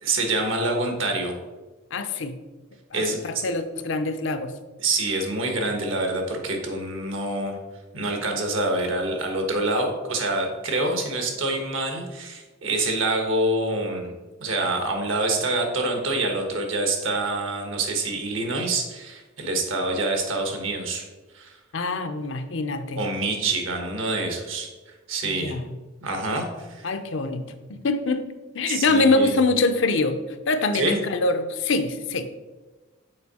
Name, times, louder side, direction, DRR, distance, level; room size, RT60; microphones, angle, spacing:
voice 1, 0.0-1.3 2.9-3.2 4.8-7.6 7.9-14.1 14.4-21.1 21.3-21.6 23.0-24.7 25.1-25.5 26.0-26.9 28.7-29.3 30.7-31.0, right 2 dB, 75° right, 4 dB, 1.3 m, -26 dB
voice 2, 1.9-2.4 2.9-4.5 21.7-23.0 25.2-25.7 26.8-28.3 28.5-30.2 30.5-32.2, left 3 dB, 65° left, 9 dB, 0.5 m, -24 dB
6.6 x 4.6 x 4.1 m, 1.2 s
head